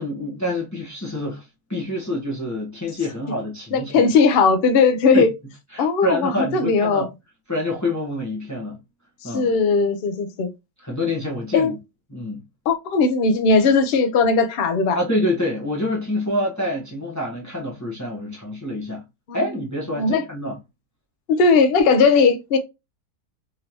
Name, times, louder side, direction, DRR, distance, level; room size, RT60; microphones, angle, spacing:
voice 1, 0.0-4.1 5.1-5.3 5.7-7.1 7.5-8.8 9.2-9.5 10.8-11.8 12.1-12.4 14.9-19.0 19.3-20.6, left 1 dB, 10° left, 1.0 m, -27 dB
voice 2, 3.7-5.3 5.8-7.1 9.2-10.5 11.5-11.7 12.7-15.0 19.3-19.4 19.9-20.2 21.3-22.6, left 4 dB, 65° left, 0.5 m, -18 dB
3.7 x 3.2 x 2.9 m
omnidirectional pair, 1.9 m